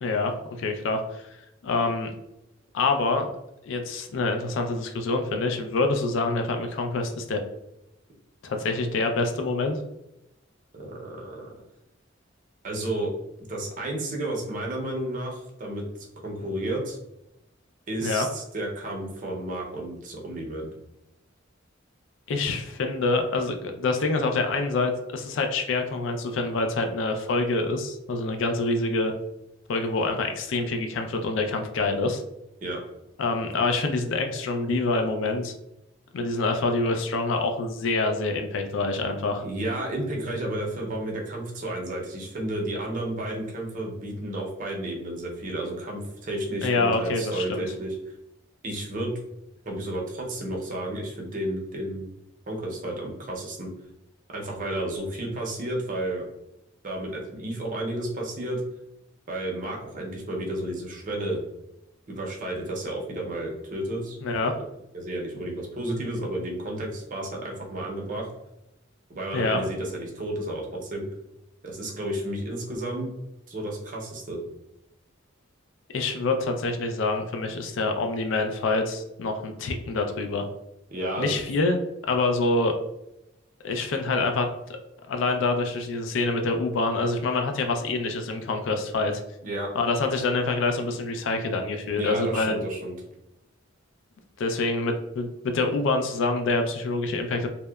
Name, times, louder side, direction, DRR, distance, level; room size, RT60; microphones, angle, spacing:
voice 1, 0.0-1.2 1.6-2.1 2.7-3.3 3.6-7.4 8.4-9.8 18.0-18.3 22.3-29.1 29.7-32.2 33.2-35.5 36.1-39.4 46.6-47.7 64.2-64.5 69.3-69.6 75.9-80.5 81.2-81.8 82.1-82.7 83.6-84.5 85.1-89.1 89.8-92.6 94.4-97.5, left 3 dB, 70° left, 5 dB, 0.4 m, -26 dB
voice 2, 10.7-11.6 12.6-13.1 13.5-15.9 16.2-17.0 17.9-20.7 32.6-32.8 39.4-48.0 48.6-49.1 49.7-52.1 52.5-53.7 54.3-56.2 56.8-58.6 59.3-61.4 62.1-64.2 64.5-64.6 64.9-68.3 69.1-71.1 71.6-73.1 73.5-74.4 80.9-81.4 89.4-89.7 91.9-93.0, right 1 dB, 45° right, -1 dB, 0.6 m, -32 dB
2.7 x 2.1 x 2.2 m, 0.87 s
head